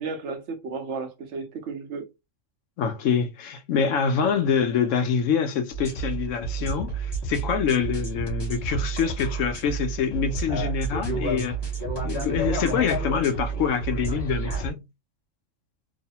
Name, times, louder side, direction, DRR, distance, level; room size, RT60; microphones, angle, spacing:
voice 1, 0.0-2.1, right 4 dB, 65° right, 1.0 m, -33 dB
voice 2, 2.8-11.6 12.0-14.8, left 6 dB, 75° left, 1.0 m, -25 dB
sound 1, 5.7-14.7, right 3 dB, 20° left, 0.9 m, -30 dB
3.1 x 2.1 x 2.8 m
omnidirectional pair, 1.3 m